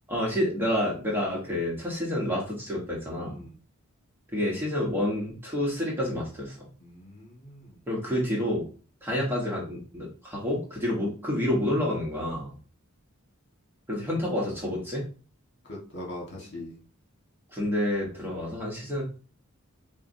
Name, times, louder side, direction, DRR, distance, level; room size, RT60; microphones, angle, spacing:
voice 1, 0.1-3.4 4.3-6.7 7.9-8.6 9.0-12.5 13.9-15.1 17.5-19.0, left 1 dB, 10° right, -3 dB, 1.2 m, -29 dB
voice 2, 3.2-3.6 6.8-7.8 15.6-16.8, left 1 dB, 55° left, -3 dB, 1.6 m, -41 dB
6.7 x 2.4 x 2.7 m, 0.37 s
head